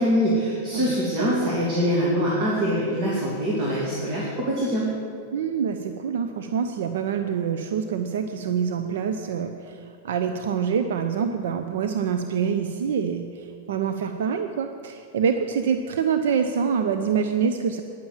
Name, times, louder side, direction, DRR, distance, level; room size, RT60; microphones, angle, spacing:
voice 1, 0.0-4.9, equal, 40° right, -5 dB, 2.7 m, -24 dB
voice 2, 5.3-17.8, right 7 dB, 75° right, 7 dB, 0.7 m, -26 dB
10.0 x 7.2 x 9.0 m, 2.3 s
hypercardioid pair, 135°, 0 cm